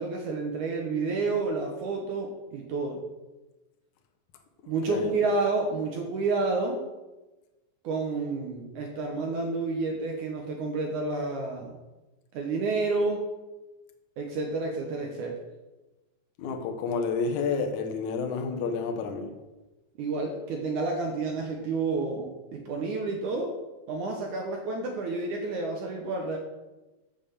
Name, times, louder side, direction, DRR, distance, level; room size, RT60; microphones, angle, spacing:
voice 1, 0.0-3.0 4.7-6.8 7.8-11.7 12.3-13.3 14.2-15.4 20.0-23.5 23.9-26.4, right 3 dB, 70° right, 1.9 m, -30 dB
voice 2, 16.4-19.3, left 5 dB, 70° left, 1.9 m, -30 dB
8.7 x 5.7 x 7.0 m
omnidirectional pair, 4.7 m